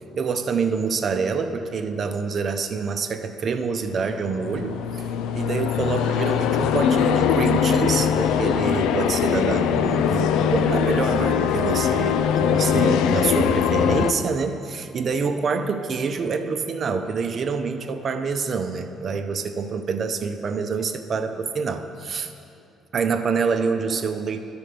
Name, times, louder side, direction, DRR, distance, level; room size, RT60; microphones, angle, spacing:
voice 1, 0.2-5.0 5.3-22.3 22.9-24.4, right 5 dB, 50° right, 7 dB, 0.6 m, -26 dB
sound 1, 4.0-14.1, left 8 dB, 85° left, 0.3 m, -21 dB
10.5 x 4.4 x 6.7 m, 2.6 s
cardioid pair, 95°, 0 cm